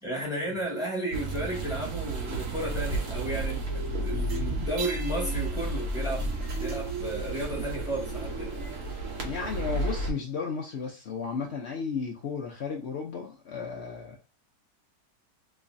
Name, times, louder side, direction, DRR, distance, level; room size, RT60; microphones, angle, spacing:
voice 1, 0.0-6.3 6.6-8.5, right 1 dB, ahead, 1.4 m, -33 dB
sound 1, 1.1-10.1, right 2 dB, 50° right, 1.1 m, -32 dB
voice 2, 9.2-14.2, left 5 dB, 80° left, 0.6 m, -34 dB
4.1 x 3.1 x 2.5 m
omnidirectional pair, 2.0 m